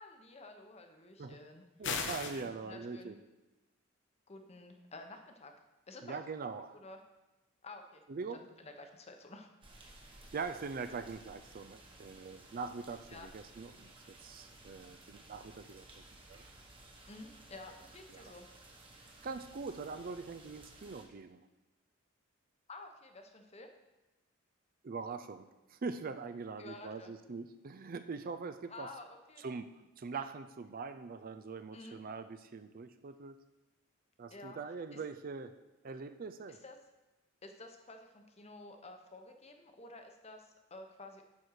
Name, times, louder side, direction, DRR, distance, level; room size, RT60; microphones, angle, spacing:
voice 1, 0.0-1.6 2.3-3.1 4.3-5.5 5.9-6.2 6.8-7.0 7.6-8.0 8.3-9.5 13.1-13.3 17.1-18.4 22.7-23.7 26.6-27.1 28.7-29.4 31.7-32.0 34.3-34.6 34.9-35.0 36.5-36.8 37.4-41.2, left 2 dB, 30° left, 5 dB, 0.9 m, -51 dB
sound 1, 1.8-2.4, left 5 dB, 60° left, 0.9 m, -36 dB
voice 2, 1.8-3.2 6.0-6.8 8.1-8.4 10.3-15.9 16.3-16.4 18.1-18.3 19.2-21.4 24.8-28.9 29.4-33.4 34.2-35.5 35.8-36.6, right 4 dB, 45° right, 10 dB, 0.4 m, -43 dB
sound 2, 9.6-21.0, right 2 dB, 25° right, 1.3 m, -57 dB
9.5 x 4.4 x 6.4 m, 1.1 s
head